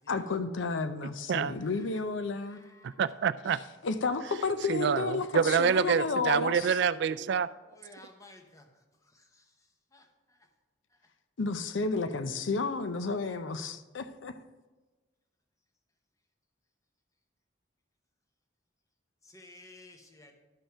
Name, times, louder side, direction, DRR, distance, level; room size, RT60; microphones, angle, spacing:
voice 1, 0.0-2.6 3.8-6.8 11.4-14.3, left 4 dB, 85° left, 0.6 m, -32 dB
voice 2, 1.3-1.8 2.4-3.0 7.7-8.7 9.1-9.5 9.9-10.4 19.2-20.3, left 2 dB, 20° left, 1.0 m, -55 dB
voice 3, 2.8-3.6 4.7-7.5, right 7 dB, 65° right, 0.3 m, -27 dB
11.5 x 5.6 x 4.3 m
head